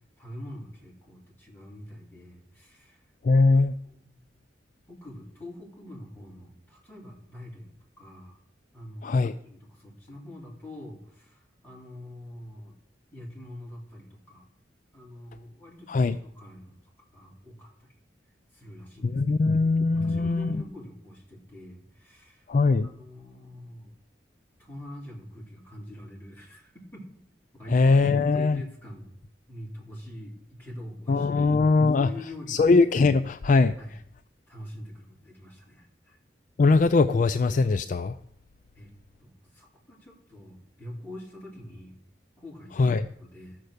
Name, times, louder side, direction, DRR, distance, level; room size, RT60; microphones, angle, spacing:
voice 1, 0.2-3.0 3.5-4.2 4.9-8.4 8.7-12.7 13.1-14.5 14.9-16.8 17.1-17.9 18.5-22.5 22.8-23.9 24.6-27.0 27.5-28.0 28.3-29.2 29.5-32.7 33.8-33.9 34.5-36.2 38.7-38.9 39.2-42.0 42.4-43.6, left 1 dB, 10° left, -3 dB, 3.2 m, -45 dB
voice 2, 3.2-3.7 9.0-9.3 15.9-16.2 19.0-20.6 22.5-22.9 27.7-28.6 31.1-32.1 32.5-33.7 36.6-38.1 42.8-43.0, left 3 dB, 45° left, 11 dB, 0.4 m, -21 dB
14.0 x 6.7 x 6.5 m, 0.70 s
head